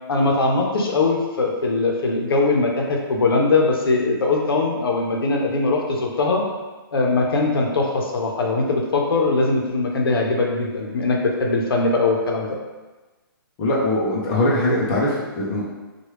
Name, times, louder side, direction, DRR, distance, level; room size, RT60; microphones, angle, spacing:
voice 1, 0.1-6.4 6.9-12.6, left 3 dB, 75° left, 0 dB, 0.7 m, -21 dB
voice 2, 13.6-15.7, left 1 dB, 20° left, -5 dB, 0.5 m, -21 dB
3.1 x 2.3 x 3.1 m, 1.2 s
hypercardioid pair, 155°, 12 cm